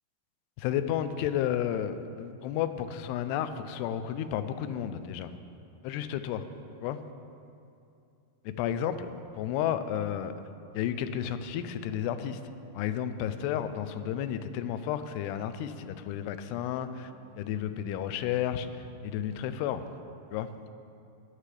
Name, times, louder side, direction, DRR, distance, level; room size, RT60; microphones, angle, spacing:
voice 1, 0.6-5.3 5.8-6.4 6.8-7.0 8.5-9.1 9.4-10.3 10.7-12.4 12.7-17.1 17.4-19.8 20.3-20.5, left 10 dB, 90° left, 10 dB, 2.7 m, -32 dB
16.0 x 9.9 x 3.3 m, 2.6 s
omnidirectional pair, 4.7 m